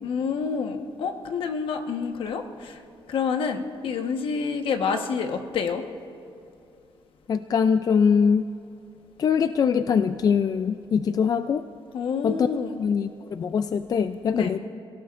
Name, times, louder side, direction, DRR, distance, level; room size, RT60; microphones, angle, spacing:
voice 1, 0.0-2.8 3.1-5.8 11.9-12.8 14.3-14.5, left 5 dB, 75° left, 5 dB, 1.2 m, -28 dB
voice 2, 7.3-8.4 9.2-11.7 12.2-12.5 12.8-14.6, left 6 dB, 45° left, 10 dB, 0.4 m, -22 dB
29.5 x 16.5 x 2.5 m, 2.7 s
cardioid pair, 130°, 9 cm